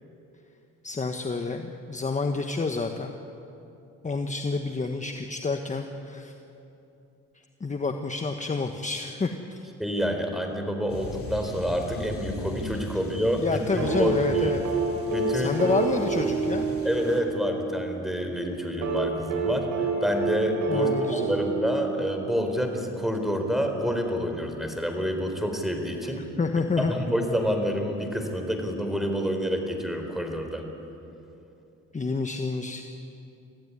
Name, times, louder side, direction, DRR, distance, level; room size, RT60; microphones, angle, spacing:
voice 1, 0.8-3.1 4.0-6.3 7.6-9.6 13.4-14.6 15.3-16.7 20.7-21.3 26.2-26.9 31.9-32.8, left 4 dB, 25° left, 5 dB, 1.3 m, -29 dB
voice 2, 9.8-14.5 15.1-15.6 16.8-26.2 26.8-30.6, equal, ahead, 4 dB, 4.0 m, -28 dB
sound 1, 10.9-17.2, left 2 dB, 50° left, 3.5 m, -39 dB
sound 2, 13.8-17.9 18.8-22.4 23.8-23.9, right 4 dB, 85° right, 4.9 m, -28 dB
24.5 x 15.5 x 9.8 m, 2.9 s
cardioid pair, 90°, 30 cm